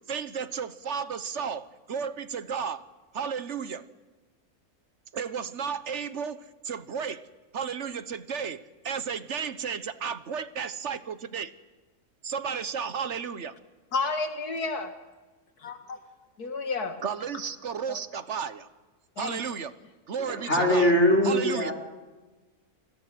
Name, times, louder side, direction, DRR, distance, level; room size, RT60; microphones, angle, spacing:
voice 1, 0.1-2.9 3.1-3.8 5.1-7.3 7.5-11.5 12.2-13.5 17.0-18.7 19.2-19.7 20.1-20.9 21.2-21.7, right 6 dB, 50° right, 14 dB, 1.3 m, -33 dB
voice 2, 13.9-14.9 15.6-16.0 16.4-17.0 17.9-18.0 19.2-19.4, left 3 dB, 85° left, 8 dB, 2.4 m, -31 dB
voice 3, 20.3-21.7, left 1 dB, 45° left, 2 dB, 5.1 m, -22 dB
28.0 x 20.5 x 7.7 m, 1.2 s
omnidirectional pair, 1.6 m